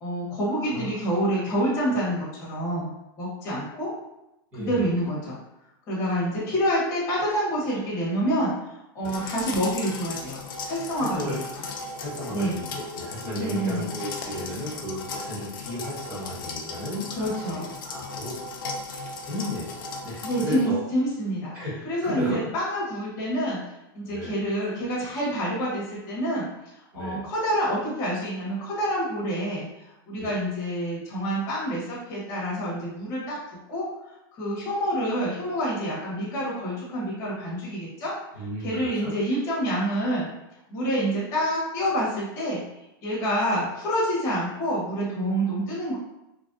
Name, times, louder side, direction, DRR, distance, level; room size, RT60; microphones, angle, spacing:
voice 1, 0.0-2.9 3.2-3.9 4.5-5.4 5.9-8.5 8.9-10.4 10.6-11.4 12.3-12.6 13.4-13.9 17.2-17.7 20.2-21.5 21.8-23.6 23.9-26.5 26.9-29.7 30.1-33.9 34.3-38.1 38.6-40.3 40.7-42.6 43.0-46.0, equal, 20° left, -8 dB, 1.1 m, -27 dB
voice 2, 0.6-1.3 4.5-4.9 9.0-9.2 10.9-11.4 11.9-18.4 19.2-20.8 21.5-22.4 24.1-24.3 26.9-27.2 30.2-30.3 38.3-39.1, equal, 15° right, -10 dB, 1.4 m, -34 dB
sound 1, 9.0-20.5, left 4 dB, 60° left, 0.5 m, -37 dB
3.0 x 2.6 x 2.6 m, 0.90 s
supercardioid pair, 175°, 12 cm